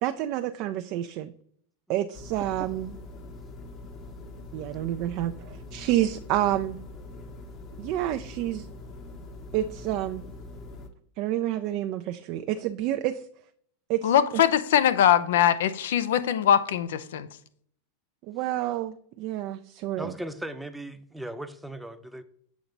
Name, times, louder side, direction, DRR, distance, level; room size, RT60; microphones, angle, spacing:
voice 1, 0.0-1.3 1.9-2.9 4.5-6.8 7.8-8.7 9.5-10.2 11.2-13.3 13.9-14.1 18.2-20.1, right 13 dB, 50° right, 0.3 m, -29 dB
sound 1, 2.1-10.9, left 2 dB, 40° left, 1.1 m, -43 dB
voice 2, 14.0-17.3, left 10 dB, 70° left, 0.5 m, -22 dB
voice 3, 20.0-22.2, right 1 dB, 5° right, 0.6 m, -37 dB
7.1 x 2.9 x 5.1 m
hypercardioid pair, 95°, 0 cm